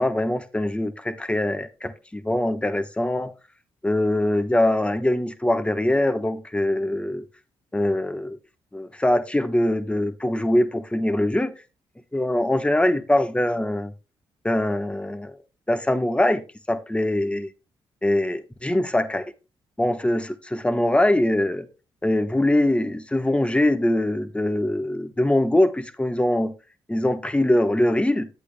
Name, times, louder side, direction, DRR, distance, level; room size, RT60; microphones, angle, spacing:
voice 1, 0.0-3.3 3.8-7.2 7.7-8.4 8.7-11.5 12.1-13.9 14.4-15.3 15.7-17.5 18.0-19.2 19.8-21.7 22.0-26.5 26.9-28.3, left 1 dB, 10° left, 1.1 m, -23 dB
10.5 x 8.2 x 2.2 m
cardioid pair, 70°, 10 cm